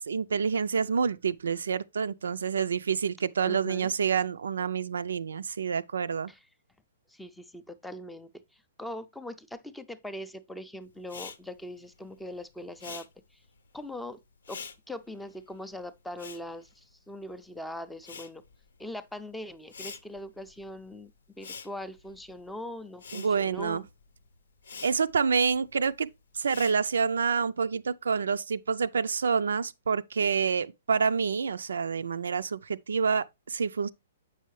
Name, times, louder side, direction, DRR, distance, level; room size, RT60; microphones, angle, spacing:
voice 1, 0.0-6.3 23.1-23.8 24.8-26.1 26.4-33.9, right 6 dB, 90° right, 0.4 m, -28 dB
voice 2, 3.5-3.9 6.3-6.5 7.1-13.4 13.7-14.2 14.5-18.4 18.8-21.1 21.4-23.9, left 1 dB, 5° left, 0.4 m, -41 dB
Respiratory sounds, 11.0-17.5 17.8-27.2, left 5 dB, 90° left, 0.7 m, -47 dB
7.5 x 5.5 x 3.1 m
hypercardioid pair, 150°, 0 cm